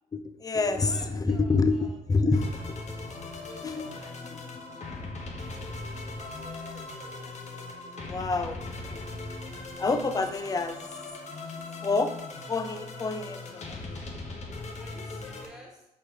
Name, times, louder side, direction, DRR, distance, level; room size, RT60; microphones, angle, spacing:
voice 1, 0.1-2.8 3.5-4.0 4.3-4.4 8.0-8.6 8.9-9.0 9.8-10.8 11.8-12.1 12.5-14.0, left 3 dB, 20° left, 8 dB, 0.5 m, -28 dB
voice 2, 0.7-2.0 3.4-4.2 4.7-5.0 6.3-7.4 14.8-15.9, equal, 5° right, -2 dB, 1.5 m, -51 dB
sound 1, 2.3-15.5, left 3 dB, 45° left, 0.8 m, -39 dB
4.1 x 3.1 x 3.3 m, 0.85 s
hypercardioid pair, 45°, 17 cm